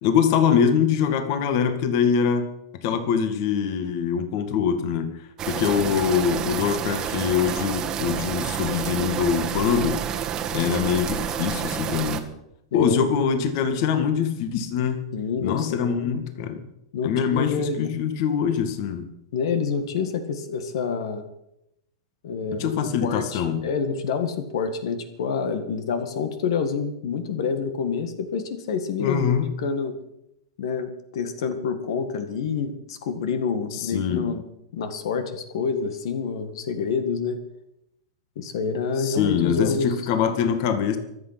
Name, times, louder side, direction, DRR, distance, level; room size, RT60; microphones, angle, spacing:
voice 1, 0.0-2.5 2.8-10.0 10.5-12.3 12.7-15.1 15.4-16.6 17.0-19.1 22.6-23.6 29.0-29.5 33.7-34.3 39.0-41.0, left 7 dB, 45° left, 8 dB, 1.8 m, -23 dB
sound 1, 5.4-12.2, right 8 dB, 20° right, 1.4 m, -29 dB
voice 2, 15.1-16.1 16.9-17.9 19.3-21.3 22.2-22.7 23.0-29.3 29.6-29.9 30.6-34.4 34.7-37.4 38.4-39.9, left 5 dB, 65° left, 9 dB, 1.8 m, -27 dB
24.5 x 8.5 x 5.9 m, 0.83 s
supercardioid pair, 160°, 3 cm